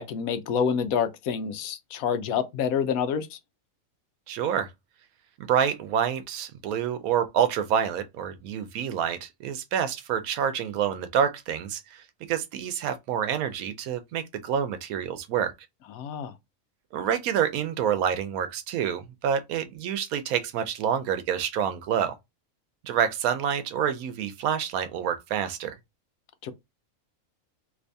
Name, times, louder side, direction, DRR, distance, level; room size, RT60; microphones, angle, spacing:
voice 1, 0.0-3.4 15.9-16.3 26.4-26.5, left 7 dB, 90° left, 1.1 m, -27 dB
voice 2, 4.3-4.7 5.4-15.5 16.9-22.1 22.8-25.7, right 8 dB, 85° right, 1.1 m, -27 dB
3.0 x 2.6 x 3.3 m
omnidirectional pair, 1.5 m